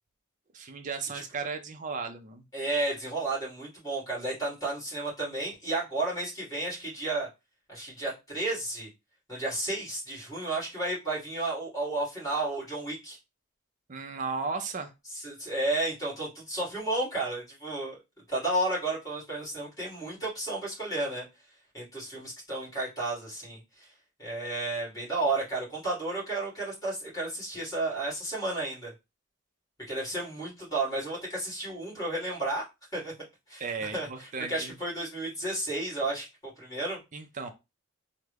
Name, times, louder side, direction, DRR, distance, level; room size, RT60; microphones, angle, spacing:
voice 1, 0.5-2.4 13.9-14.9 33.6-34.7 37.1-37.5, right 4 dB, 35° right, 6 dB, 0.5 m, -35 dB
voice 2, 2.5-7.3 7.7-8.9 9.3-13.2 15.1-18.0 18.3-21.2 21.7-23.9 24.2-28.9 29.9-32.7 32.9-33.1 33.5-36.3 36.6-37.0, right 2 dB, 15° left, -6 dB, 1.9 m, -32 dB
3.5 x 2.1 x 3.3 m, 0.25 s
head